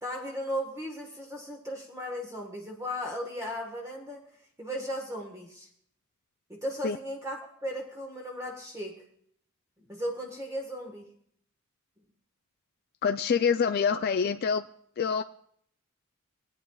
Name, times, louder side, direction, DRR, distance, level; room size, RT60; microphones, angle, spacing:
voice 1, 0.0-4.3 4.6-5.7 6.5-9.0 9.9-11.1, equal, 15° right, 1 dB, 1.3 m, -36 dB
voice 2, 13.0-14.6 15.0-15.2, left 6 dB, 45° left, 8 dB, 0.3 m, -26 dB
20.5 x 8.9 x 2.3 m, 0.65 s
head